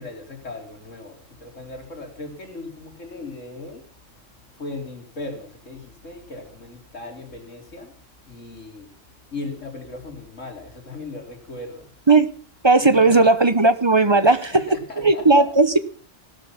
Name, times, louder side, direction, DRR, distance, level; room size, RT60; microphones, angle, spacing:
voice 1, 0.0-3.8 4.5-7.9 8.3-8.9 9.3-11.9 12.8-13.3 14.2-15.7, left 2 dB, 85° left, 3 dB, 3.8 m, -37 dB
voice 2, 12.6-14.6 15.0-15.8, right 3 dB, 25° right, 13 dB, 0.8 m, -16 dB
16.5 x 12.5 x 5.8 m, 0.43 s
omnidirectional pair, 1.3 m